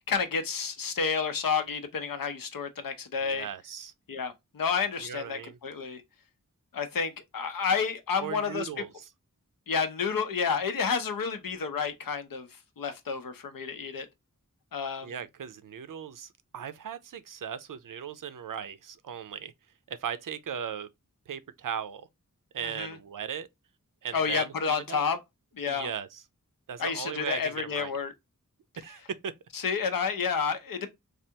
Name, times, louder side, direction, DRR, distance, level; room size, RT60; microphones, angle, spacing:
voice 1, 0.0-3.5 4.1-6.0 6.7-8.7 9.7-12.5 12.8-14.1 14.7-15.1 22.6-23.0 24.1-25.2 25.5-25.9 26.8-28.1 29.5-30.9, left 5 dB, 85° left, 0.6 m, -30 dB
voice 2, 3.2-3.9 5.0-5.6 8.2-9.1 15.0-19.5 19.9-20.9 21.3-22.1 22.5-23.5 24.0-25.0 25.6-26.2 26.7-27.9 28.8-29.3, right 8 dB, 70° right, 0.5 m, -37 dB
3.3 x 2.4 x 2.7 m
wide cardioid pair, 55°, 33 cm